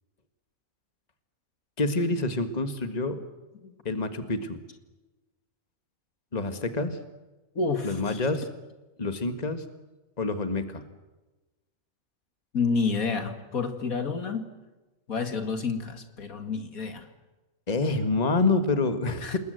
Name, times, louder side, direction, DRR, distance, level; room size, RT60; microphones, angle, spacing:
voice 1, 1.8-3.2 3.9-4.6 6.3-7.0 7.8-8.5 9.0-9.6 10.2-10.8 17.7-19.4, left 3 dB, 30° left, 9 dB, 1.8 m, -27 dB
voice 2, 7.5-8.3 12.5-14.5 15.1-17.1 19.2-19.4, left 4 dB, 85° left, 7 dB, 2.6 m, -29 dB
28.5 x 20.5 x 8.0 m, 1.1 s
omnidirectional pair, 1.4 m